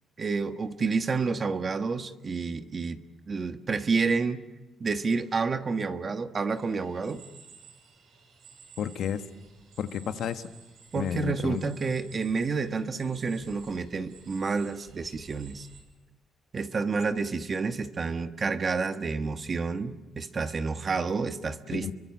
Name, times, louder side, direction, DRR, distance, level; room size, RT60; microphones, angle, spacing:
voice 1, 0.2-3.0 3.3-4.4 4.8-7.2 10.9-15.7 16.5-21.9, right 4 dB, 40° right, 8 dB, 1.4 m, -29 dB
sound 1, 6.6-15.8, right 5 dB, 80° right, 6.2 m, -53 dB
voice 2, 8.8-9.2 9.8-10.5 10.9-11.6 21.7-21.9, left 9 dB, 70° left, 8 dB, 1.4 m, -31 dB
29.5 x 23.5 x 7.5 m, 1.1 s
cardioid pair, 90°, 0 cm